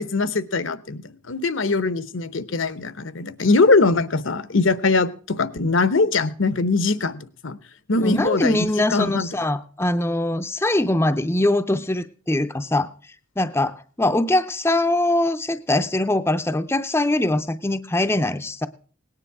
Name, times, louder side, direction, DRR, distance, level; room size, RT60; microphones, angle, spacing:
voice 1, 0.0-7.6 7.9-8.6 8.9-9.3, left 3 dB, 75° left, 14 dB, 0.9 m, -21 dB
voice 2, 8.0-12.9 13.4-18.7, left 1 dB, 10° left, 9 dB, 0.5 m, -22 dB
18.0 x 10.0 x 4.7 m, 0.43 s
head